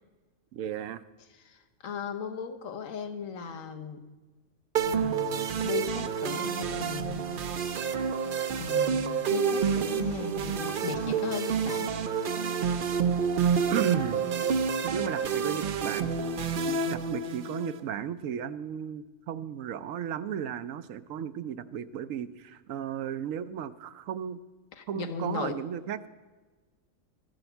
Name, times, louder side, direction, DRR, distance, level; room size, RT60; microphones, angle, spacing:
voice 1, 0.5-1.0 13.7-14.2 14.8-16.1 16.7-24.4 24.9-26.1, right 9 dB, 75° right, 13 dB, 1.0 m, -34 dB
voice 2, 1.4-4.0 4.8-7.7 8.6-11.9 24.8-25.6, left 5 dB, 70° left, 7 dB, 1.3 m, -37 dB
sound 1, 4.8-17.8, right 6 dB, 55° right, 0.6 m, -29 dB
13.5 x 7.8 x 7.1 m, 1.3 s
omnidirectional pair, 1.4 m